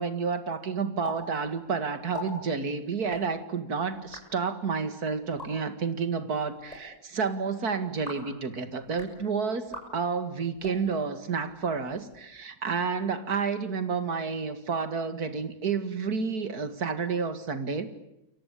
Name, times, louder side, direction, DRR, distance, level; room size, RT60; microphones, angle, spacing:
voice 1, 0.0-17.9, right 5 dB, 75° right, 11 dB, 2.6 m, -30 dB
sound 1, 1.0-1.2 1.4-1.5 2.0-2.3 3.0-3.2 3.9-4.2 5.2-5.5 6.5-6.8 7.9-8.3 8.8-9.1 9.6-9.9 10.5-10.8 11.5-12.2, left 2 dB, 25° left, 7.1 m, -42 dB
29.5 x 23.5 x 8.5 m, 0.86 s
omnidirectional pair, 1.6 m